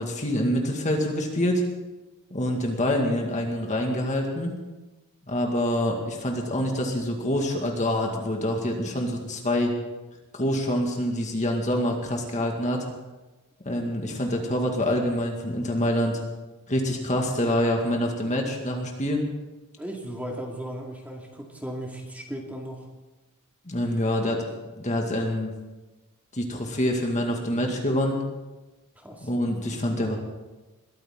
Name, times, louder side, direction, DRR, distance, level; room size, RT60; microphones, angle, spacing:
voice 1, 0.0-1.6 2.3-4.5 5.3-9.7 10.3-12.8 13.7-16.2 16.7-19.2 23.7-25.5 26.3-28.2 29.2-30.2, left 1 dB, 35° left, 1 dB, 2.0 m, -26 dB
voice 2, 19.8-22.9 29.0-29.3, right 1 dB, 5° right, 0 dB, 2.3 m, -36 dB
21.5 x 14.0 x 3.8 m, 1.1 s
head